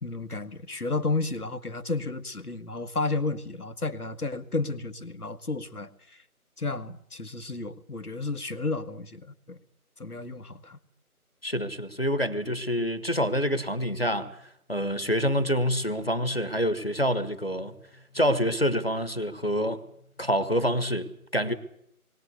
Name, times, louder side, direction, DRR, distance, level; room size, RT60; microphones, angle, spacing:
voice 1, 0.0-6.2 6.6-9.6 10.0-10.8, left 3 dB, 80° left, 1.8 m, -32 dB
voice 2, 11.4-14.4 14.7-17.7 18.1-19.8 20.2-21.5, equal, 40° left, 1.5 m, -27 dB
22.0 x 18.0 x 8.1 m
figure-of-eight pair, 180°, 45 cm